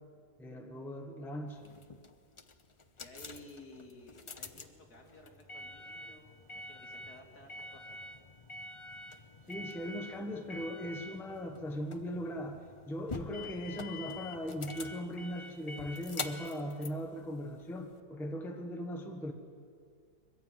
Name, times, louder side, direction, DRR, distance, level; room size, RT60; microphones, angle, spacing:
voice 1, 0.4-1.7 9.5-19.3, equal, ahead, 3 dB, 1.2 m, -39 dB
sound 1, 1.6-18.0, left 3 dB, 40° left, 0.4 m, -46 dB
voice 2, 3.0-8.0, left 2 dB, 60° left, 1 dB, 3.2 m, -55 dB
22.0 x 15.0 x 9.2 m, 2.2 s
omnidirectional pair, 1.9 m